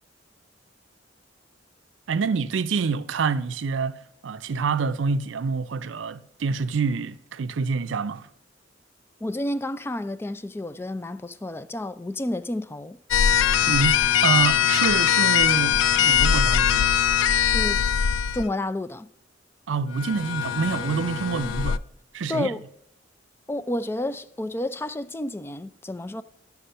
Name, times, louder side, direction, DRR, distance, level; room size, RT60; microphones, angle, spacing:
voice 1, 2.1-8.3 13.7-14.0 14.2-16.9 19.7-21.8 22.1-22.6, right 5 dB, 85° right, 0.5 m, -27 dB
voice 2, 9.2-13.0 17.4-17.8 18.3-19.1 22.3-22.6 23.5-26.2, left 1 dB, 15° left, 0.3 m, -30 dB
sound 1, 13.1-18.5 19.9-21.8, left 9 dB, 90° left, 0.3 m, -21 dB
11.5 x 6.0 x 5.5 m
head